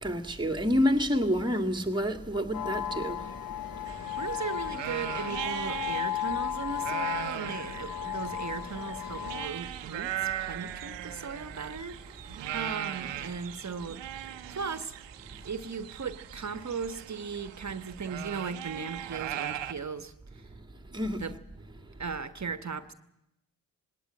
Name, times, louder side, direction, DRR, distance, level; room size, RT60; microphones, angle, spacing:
voice 1, 0.0-3.3 20.9-21.3, equal, 10° right, 2.1 m, -28 dB
sound 1, 2.5-9.5, left 11 dB, 55° left, 0.9 m, -35 dB
sound 2, 3.9-19.7, right 12 dB, 90° right, 1.0 m, -39 dB
voice 2, 4.2-14.0 14.5-14.9 15.4-20.4 20.9-21.4 22.0-22.9, right 5 dB, 40° right, 1.4 m, -37 dB
19.5 x 18.0 x 9.0 m
supercardioid pair, 50°, 42 cm